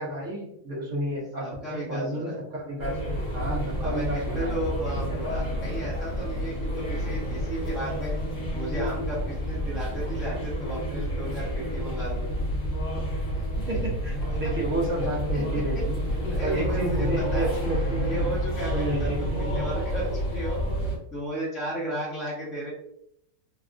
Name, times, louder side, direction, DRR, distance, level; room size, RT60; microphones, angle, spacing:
voice 1, 0.0-4.6 13.7-16.0 16.4-18.3 18.7-19.6, right 1 dB, 60° right, -4 dB, 1.4 m, -31 dB
voice 2, 1.4-2.4 3.8-8.1 8.5-12.3 13.3-13.4 15.3-15.4 15.7-15.8 16.2-17.5 18.0-22.7, right 1 dB, ahead, -6 dB, 0.6 m, -34 dB
sound 1, 2.8-21.0, equal, 60° left, 1.4 m, -29 dB
3.4 x 2.3 x 2.4 m, 0.74 s
omnidirectional pair, 1.5 m